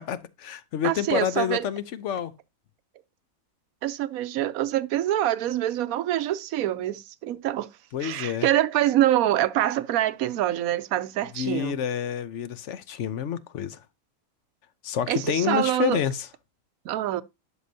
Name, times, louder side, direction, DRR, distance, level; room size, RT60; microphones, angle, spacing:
voice 1, 0.0-2.3 7.9-8.5 11.4-13.8 14.8-16.3, left 8 dB, 60° left, 0.9 m, -28 dB
voice 2, 0.8-1.6 3.8-7.7 8.0-11.8 15.1-16.0 16.8-17.2, right 13 dB, 75° right, 1.1 m, -25 dB
11.0 x 6.4 x 2.7 m
omnidirectional pair, 1.5 m